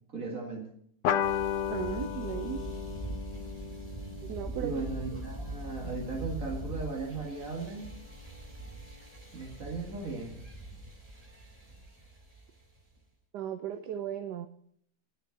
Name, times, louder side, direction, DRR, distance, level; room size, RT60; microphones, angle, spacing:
voice 1, 0.1-0.7 4.6-7.9 9.3-10.4, right 3 dB, 55° right, 0 dB, 2.3 m, -37 dB
sound 1, 1.0-6.0, left 9 dB, 90° left, 1.4 m, -34 dB
sound 2, 1.2-13.0, right 2 dB, 20° right, 2.3 m, -44 dB
voice 2, 1.7-2.6 4.3-4.8 13.3-14.5, right 10 dB, 80° right, 8 dB, 1.3 m, -36 dB
sound 3, 1.8-7.0, equal, 30° left, 0.6 m, -43 dB
9.8 x 6.7 x 8.9 m, 0.66 s
omnidirectional pair, 1.8 m